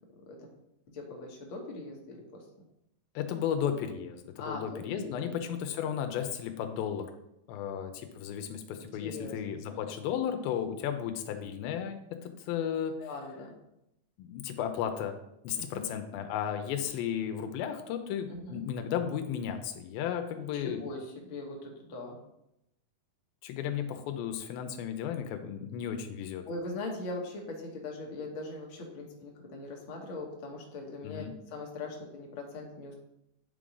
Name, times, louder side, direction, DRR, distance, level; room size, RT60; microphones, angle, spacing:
voice 1, 0.2-0.5 0.9-2.4 4.4-5.3 8.8-9.4 9.7-9.9 13.0-13.5 15.5-15.9 18.3-18.6 20.3-22.2 26.5-32.9, left 2 dB, 55° left, 0 dB, 1.4 m, -41 dB
voice 2, 3.2-7.2 7.5-13.0 14.2-15.2 15.4-20.8 23.4-26.4 31.0-31.3, left 9 dB, 85° left, 7 dB, 2.4 m, -34 dB
9.3 x 3.8 x 4.9 m, 0.81 s
omnidirectional pair, 4.3 m